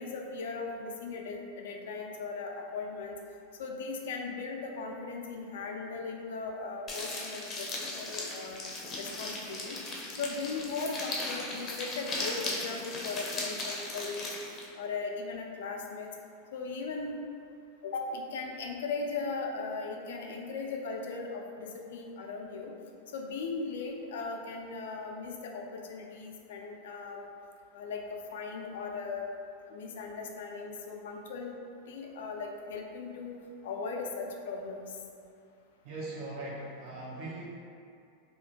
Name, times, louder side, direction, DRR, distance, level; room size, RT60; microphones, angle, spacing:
voice 1, 0.0-3.2 3.6-8.6 9.0-9.8 10.2-14.3 14.8-16.1 16.5-17.1 17.8-22.7 23.1-27.3 27.7-29.3 29.7-31.5 31.9-33.4 33.6-35.0, left 4 dB, 80° left, 1 dB, 0.3 m, -38 dB
sound 1, 6.9-14.7, left 2 dB, 30° left, 0.5 m, -37 dB
voice 2, 35.8-37.4, right 2 dB, 55° right, -5 dB, 0.7 m, -40 dB
2.4 x 2.1 x 2.7 m, 2.4 s
hypercardioid pair, 115°, 0 cm